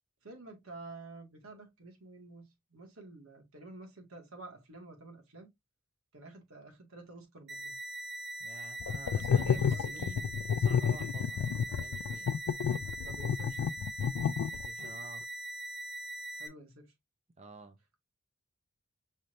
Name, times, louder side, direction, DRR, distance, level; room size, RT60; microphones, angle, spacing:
voice 1, 0.2-5.5 6.1-7.7 9.1-10.0 13.0-13.8 16.4-16.9, right 2 dB, 80° right, 1.9 m, -50 dB
sound 1, 7.5-16.5, right 1 dB, 55° right, 1.0 m, -41 dB
voice 2, 8.4-12.3 14.5-15.3 17.4-17.8, right 3 dB, 30° right, 0.5 m, -50 dB
sound 2, 8.8-14.9, left 7 dB, 75° left, 0.3 m, -30 dB
5.5 x 3.1 x 2.5 m
head